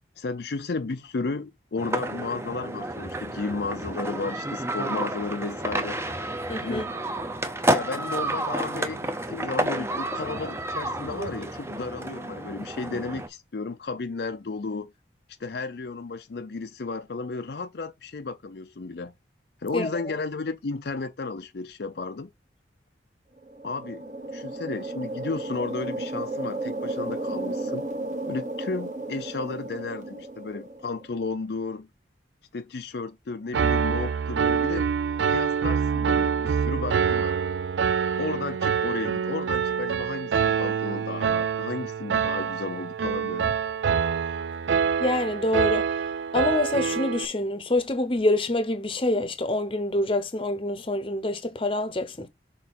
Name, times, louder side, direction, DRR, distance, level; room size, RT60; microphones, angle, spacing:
voice 1, 0.2-6.0 6.6-6.9 7.6-14.9 15.4-19.1 19.6-22.3 23.6-24.0 24.3-27.8 28.3-31.9 32.5-34.9 35.3-37.4 38.2-43.5, left 3 dB, 65° left, 0.5 m, -33 dB
sound 1, 1.8-13.3, right 1 dB, 15° right, 0.7 m, -30 dB
voice 2, 6.5-6.9 19.7-19.9 45.0-45.9 46.3-52.3, left 2 dB, 30° left, 0.8 m, -26 dB
sound 2, 23.4-31.1, right 2 dB, 40° right, 1.3 m, -34 dB
Piano, 33.5-47.2, right 6 dB, 80° right, 0.4 m, -26 dB
6.3 x 3.9 x 4.1 m
head